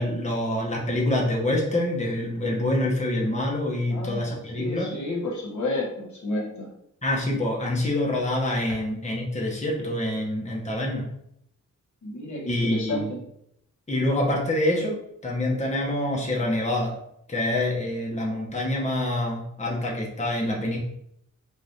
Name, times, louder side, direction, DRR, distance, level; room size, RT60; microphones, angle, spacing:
voice 1, 0.0-4.9 7.0-11.1 12.5-13.1 13.9-14.9 15.2-16.9 17.3-20.8, left 1 dB, 25° left, -3 dB, 0.8 m, -26 dB
voice 2, 3.9-6.7 12.0-13.2, left 2 dB, 70° left, -3 dB, 1.1 m, -31 dB
4.9 x 2.5 x 2.7 m, 0.73 s
wide cardioid pair, 125°, 30 cm